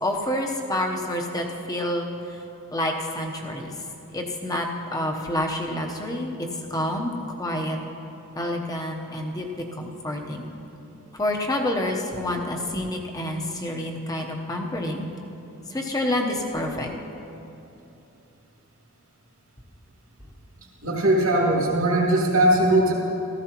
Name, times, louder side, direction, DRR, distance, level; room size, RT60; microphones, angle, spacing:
voice 1, 0.0-2.4 2.7-3.7 4.1-4.7 4.9-6.4 6.7-7.1 7.4-7.8 8.3-10.5 11.1-15.0 15.7-16.9, left 1 dB, 15° left, 1 dB, 0.9 m, -28 dB
voice 2, 20.8-22.9, right 1 dB, 75° right, -3 dB, 2.7 m, -20 dB
16.0 x 14.0 x 3.0 m, 2.9 s
head